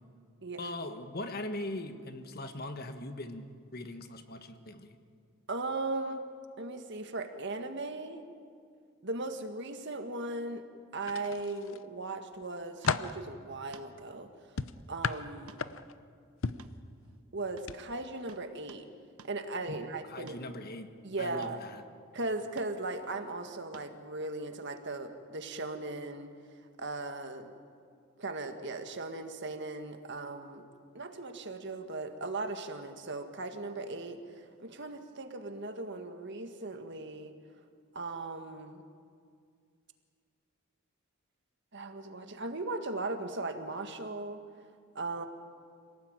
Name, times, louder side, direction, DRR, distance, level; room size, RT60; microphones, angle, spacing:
voice 1, 0.6-4.9 19.7-20.9 21.2-21.8, left 1 dB, 45° left, 8 dB, 1.5 m, -40 dB
voice 2, 5.5-6.3 6.6-8.3 9.0-10.7 10.9-14.3 14.9-15.6 17.3-18.9 19.2-20.4 21.0-21.6 22.1-26.3 26.8-27.5 28.2-30.7 30.9-37.3 37.9-38.8 41.7-44.4 45.0-45.3, right 2 dB, 55° right, 7 dB, 1.8 m, -38 dB
sound 1, 11.0-11.8 12.3-13.2 14.6-16.0 16.4-16.7 17.6-17.8 18.1-18.3, left 5 dB, 60° left, 0.8 m, -34 dB
sound 2, 12.8-13.1 13.7-13.9 15.5-15.7 15.9-16.1 16.6-17.3 17.6-17.8 18.3-18.9 19.2-19.4 20.3-20.5 21.4-21.6 22.6-22.7 23.7-24.0 25.6-25.7, right 4 dB, 85° right, 1.2 m, -54 dB
26.5 x 18.5 x 9.0 m, 2.2 s
head